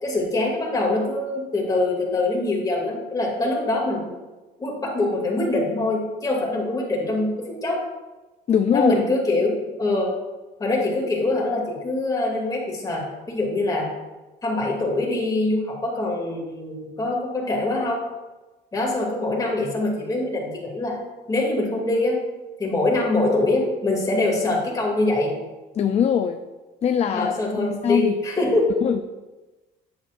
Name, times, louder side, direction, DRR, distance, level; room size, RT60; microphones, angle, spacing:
voice 1, 0.0-4.1 4.6-7.8 8.7-10.1 10.6-13.9 14.4-18.0 18.7-21.0 21.3-22.2 22.6-25.3 27.1-28.7, left 2 dB, 20° left, -2 dB, 2.5 m, -24 dB
voice 2, 8.5-8.9 25.8-26.4 26.8-27.4 27.8-28.1 28.8-29.0, left 8 dB, 40° left, 6 dB, 0.4 m, -21 dB
9.5 x 7.3 x 2.5 m, 1.2 s
cardioid pair, 110°, 17 cm